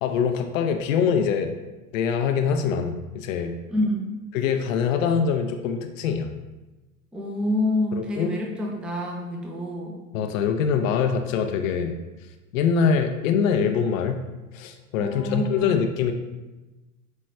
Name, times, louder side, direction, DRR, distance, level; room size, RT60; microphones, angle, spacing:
voice 1, 0.0-1.5 1.9-3.6 4.3-6.3 7.9-8.3 10.1-12.0 12.5-14.2 14.5-16.1, left 6 dB, 65° left, 6 dB, 0.6 m, -24 dB
voice 2, 3.7-4.2 7.1-10.0 15.0-15.7, left 1 dB, ahead, 0 dB, 0.5 m, -27 dB
7.7 x 3.1 x 2.2 m, 1.1 s
hypercardioid pair, 95°, 42 cm